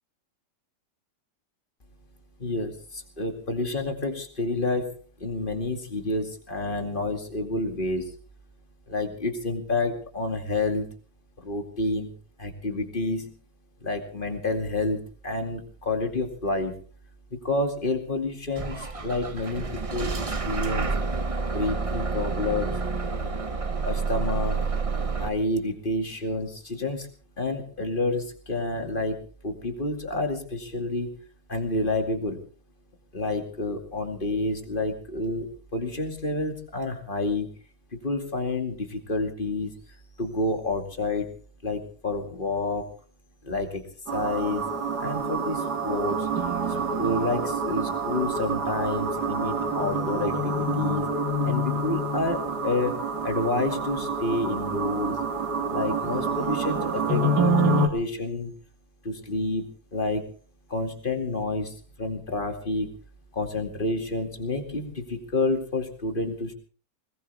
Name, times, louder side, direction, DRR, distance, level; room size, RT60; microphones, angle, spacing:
voice 1, 2.4-4.9 5.2-8.1 8.9-10.9 11.4-12.1 12.4-13.3 13.8-16.7 17.3-20.1 20.4-20.9 21.5-22.7 23.8-24.6 25.2-27.1 27.4-31.1 31.5-32.4 33.1-37.5 37.9-39.7 40.2-41.3 41.6-42.9 43.4-43.8 44.1-44.6 45.0-46.3 46.7-51.1 51.4-55.2 55.7-58.5 59.0-60.2 60.7-62.9 63.3-66.5, left 2 dB, 30° left, 5 dB, 2.5 m, -29 dB
Bus / Engine starting, 18.5-25.3, right 4 dB, 25° right, 0.8 m, -29 dB
sound 1, 44.1-57.9, right 2 dB, 75° right, 2.4 m, -27 dB
21.0 x 19.5 x 3.5 m, 0.41 s
omnidirectional pair, 1.8 m